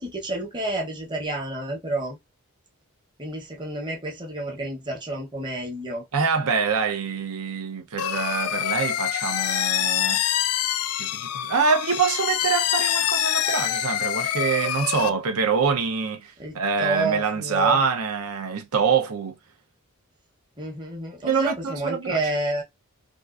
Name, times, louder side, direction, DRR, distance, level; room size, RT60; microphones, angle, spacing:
voice 1, 0.0-2.2 3.2-6.0 15.0-15.1 16.4-17.8 20.6-22.6, right 2 dB, 20° right, 1.0 m, -29 dB
voice 2, 6.1-10.2 11.0-19.3 21.2-22.2, right 5 dB, 80° right, 0.7 m, -25 dB
sound 1, 8.0-15.1, left 11 dB, 80° left, 0.4 m, -25 dB
3.6 x 2.5 x 2.4 m
head